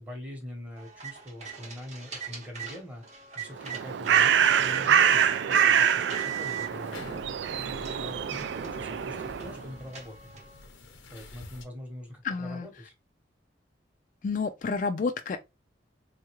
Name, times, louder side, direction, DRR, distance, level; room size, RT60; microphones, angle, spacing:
voice 1, 0.0-3.0 3.3-10.4 11.1-12.9, equal, 10° right, 1.0 m, -43 dB
sound 1, 0.8-4.2 4.7-5.7 6.1-6.7 7.3-7.4 7.8-10.6, right 7 dB, 35° right, 0.8 m, -40 dB
Bird, 3.5-9.6, right 8 dB, 70° right, 0.3 m, -25 dB
sound 2, 6.7-11.6, left 2 dB, 90° left, 0.7 m, -46 dB
voice 2, 12.2-12.7 14.2-15.4, left 4 dB, 45° left, 0.3 m, -30 dB
3.6 x 2.3 x 3.0 m
head